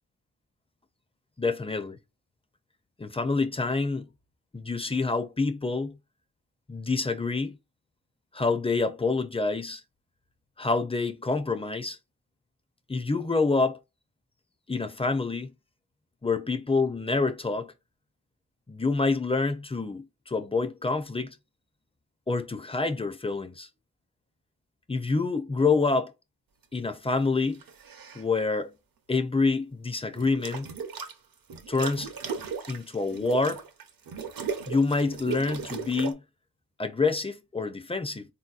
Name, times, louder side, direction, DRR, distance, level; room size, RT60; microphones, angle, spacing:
voice 1, 1.4-2.0 3.0-4.1 4.5-6.0 6.7-7.6 8.3-9.8 10.6-12.0 12.9-13.8 14.7-15.5 16.2-17.7 18.7-21.4 22.3-23.7 24.9-26.1 26.7-27.6 28.1-28.7 29.1-30.7 31.7-32.1 32.7-33.6 34.7-36.2 36.8-38.3, left 3 dB, 15° left, 0.4 m, -27 dB
sound 1, 27.5-28.2 30.2-31.1 31.5-36.1, right 6 dB, 65° right, 0.7 m, -36 dB
4.0 x 2.7 x 2.3 m
wide cardioid pair, 110°, 37 cm